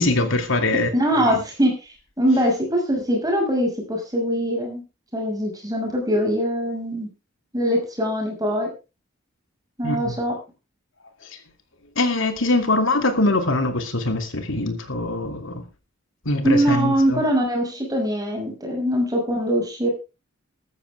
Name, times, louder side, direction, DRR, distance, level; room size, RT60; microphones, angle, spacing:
voice 1, 0.0-1.3 9.8-10.1 12.0-15.6 16.2-17.2, left 2 dB, 65° left, 6 dB, 2.9 m, -23 dB
voice 2, 0.9-1.7 2.2-4.8 5.1-7.1 7.5-8.7 9.8-10.3 16.4-19.9, equal, 20° right, 1 dB, 6.3 m, -22 dB
14.0 x 13.5 x 3.6 m, 0.30 s
head